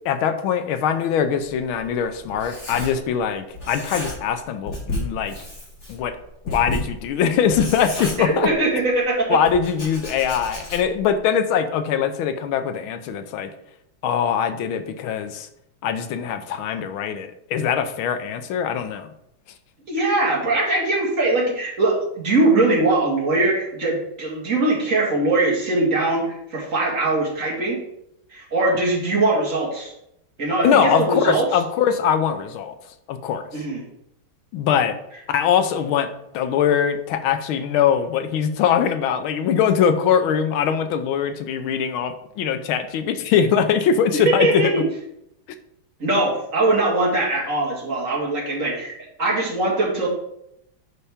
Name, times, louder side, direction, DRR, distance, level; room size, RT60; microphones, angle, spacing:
voice 1, 0.0-5.4 5.9-6.2 6.5-8.5 9.3-13.5 14.0-15.5 15.8-19.1 30.6-32.7 33.1-33.4 34.5-35.0 35.3-44.6, left 8 dB, 80° left, 9 dB, 1.5 m, -22 dB
Writing, 1.4-3.3 3.5-4.4 4.7-8.8 9.5-11.1, left 1 dB, 35° left, 2.1 m, -32 dB
voice 2, 8.2-9.4 19.9-27.8 28.3-29.9 30.4-31.5 33.5-33.8 44.2-44.8 46.0-50.1, right 2 dB, 40° right, -3 dB, 2.2 m, -21 dB
8.4 x 5.6 x 3.5 m, 0.77 s
omnidirectional pair, 2.3 m